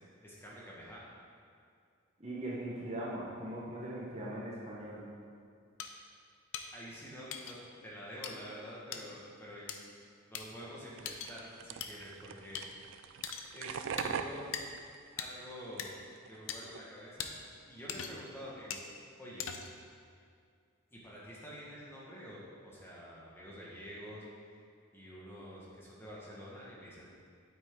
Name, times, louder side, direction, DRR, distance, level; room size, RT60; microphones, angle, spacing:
voice 1, 0.2-1.1 6.7-7.6 7.8-9.7 10.3-12.8 13.5-14.5 15.2-15.9 16.3-17.3 17.7-18.9 19.2-19.5 20.9-24.2 24.9-27.1, equal, 10° left, -6 dB, 1.6 m, -48 dB
voice 2, 2.2-5.1, right 1 dB, 30° right, -5 dB, 1.2 m, -40 dB
sound 1, 5.8-5.9 6.5-6.7 7.3-7.6 8.2-8.3 8.9-9.0 9.7-9.8 10.3-10.4 11.1-11.3 11.8-11.9 12.5-12.7 13.2-13.5 14.0-14.1 14.5-14.6 15.2-15.3 15.8-15.9 16.5-16.6 17.2-17.3 17.9-18.3 18.7-18.9 19.4-19.8, left 8 dB, 70° left, 0.6 m, -40 dB
sound 2, 11.0-15.8 16.1-16.8, right 6 dB, 60° right, 0.4 m, -42 dB
9.1 x 8.4 x 3.8 m, 2.3 s
head